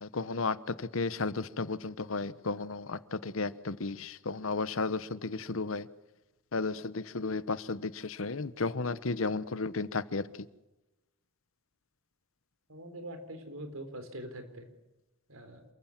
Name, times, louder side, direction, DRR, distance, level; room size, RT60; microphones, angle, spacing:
voice 1, 0.0-5.9 6.5-10.3, left 3 dB, 75° left, 1.0 m, -33 dB
voice 2, 12.7-14.7 15.3-15.7, right 1 dB, 80° right, 4.2 m, -43 dB
27.5 x 15.0 x 7.3 m
head